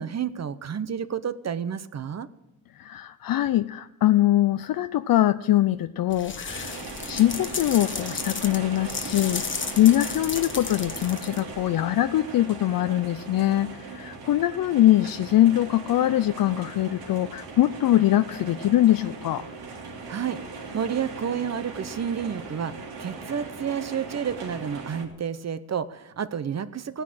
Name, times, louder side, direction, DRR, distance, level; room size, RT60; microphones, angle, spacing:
voice 1, 0.0-2.3 20.1-20.4 20.7-22.7 23.0-27.0, right 7 dB, 45° right, 13 dB, 0.8 m, -30 dB
voice 2, 2.7-6.8 7.1-9.4 9.8-19.5, left 13 dB, 70° left, 12 dB, 0.5 m, -22 dB
sound 1, 6.1-11.7, left 5 dB, 35° left, 1.1 m, -34 dB
sound 2, 6.5-25.0, right 4 dB, 85° right, 3.2 m, -39 dB
16.0 x 9.9 x 7.7 m, 0.91 s
wide cardioid pair, 125°, 36 cm